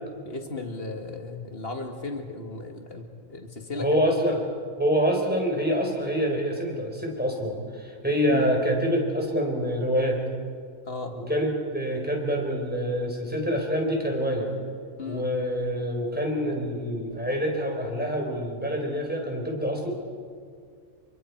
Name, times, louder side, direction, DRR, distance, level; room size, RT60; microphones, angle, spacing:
voice 1, 0.3-4.0 8.3-8.5 10.9-11.2 15.0-15.3, left 3 dB, 45° left, 4 dB, 2.2 m, -36 dB
voice 2, 3.8-4.4 4.8-10.2 11.1-14.5 15.1-19.9, equal, 5° right, 1 dB, 4.1 m, -26 dB
28.5 x 24.0 x 4.6 m, 2.1 s
omnidirectional pair, 1.4 m